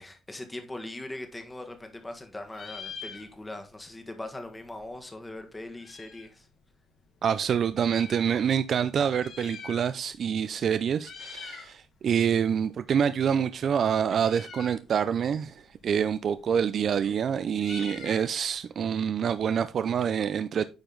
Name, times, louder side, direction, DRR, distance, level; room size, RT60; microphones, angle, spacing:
voice 1, 0.0-6.5, left 1 dB, 15° left, 1.5 m, -40 dB
Meow, 1.2-2.2 2.4-3.7 4.0-4.1 4.3-6.4 7.1-8.3 9.0-10.2 10.5-10.7 11.0-11.7 12.1-19.9, left 6 dB, 55° left, 1.8 m, -46 dB
voice 2, 7.2-20.6, right 8 dB, 50° right, 0.4 m, -26 dB
9.0 x 5.2 x 3.8 m
cardioid pair, 130°, 0 cm